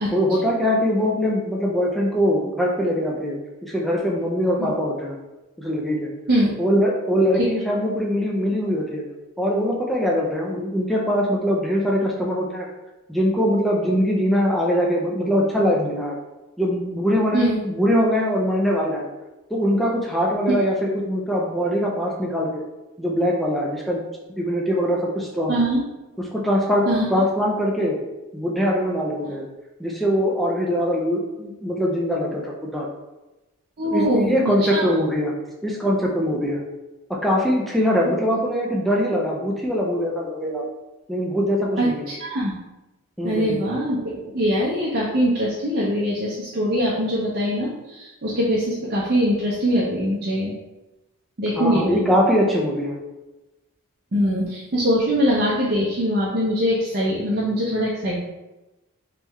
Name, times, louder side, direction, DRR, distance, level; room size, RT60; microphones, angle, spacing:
voice 1, 0.1-3.4 3.6-5.2 5.6-6.1 6.6-9.0 9.4-12.7 13.1-16.2 16.6-19.1 19.5-22.6 23.0-24.0 24.4-25.6 26.2-28.0 28.3-29.4 29.8-32.9 33.8-35.3 35.6-36.6 37.1-40.6 41.1-42.1 43.2-43.6 51.6-53.0, equal, ahead, -3 dB, 0.5 m, -22 dB
voice 2, 25.5-25.8 26.9-27.0 33.8-34.8 41.8-42.5 43.2-50.5 51.4-52.0 54.1-58.3, equal, 45° right, -6 dB, 0.6 m, -22 dB
3.5 x 3.3 x 3.1 m, 1.0 s
head